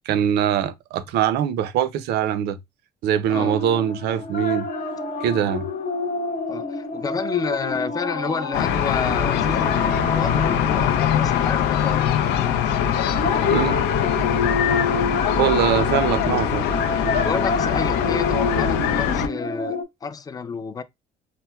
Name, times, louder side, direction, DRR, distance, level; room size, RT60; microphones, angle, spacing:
voice 1, 0.1-2.6 3.0-4.7 5.2-5.7 13.5-13.8 15.4-16.7, right 9 dB, 75° right, 0.5 m, -22 dB
sound 1, 3.3-11.6 12.9-19.8, left 3 dB, 55° left, 0.8 m, -28 dB
voice 2, 6.5-12.1 17.2-20.8, left 5 dB, 20° left, 0.4 m, -30 dB
sound 2, 8.5-19.3, left 9 dB, 85° left, 0.5 m, -22 dB
4.3 x 2.0 x 2.2 m
cardioid pair, 110°, 17 cm